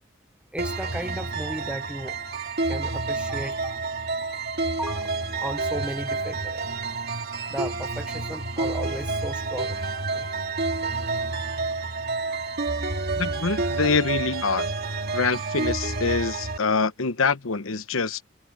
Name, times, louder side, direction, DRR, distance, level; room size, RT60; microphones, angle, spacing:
voice 1, 0.5-2.2 2.7-3.8 4.8-5.1 5.4-6.7 7.5-9.8 10.1-10.3, right 1 dB, 5° right, 0.8 m, -35 dB
sound 1, 0.6-16.6, right 3 dB, 55° right, 2.4 m, -29 dB
voice 2, 13.1-14.7 15.1-18.2, left 4 dB, 80° left, 1.0 m, -25 dB
head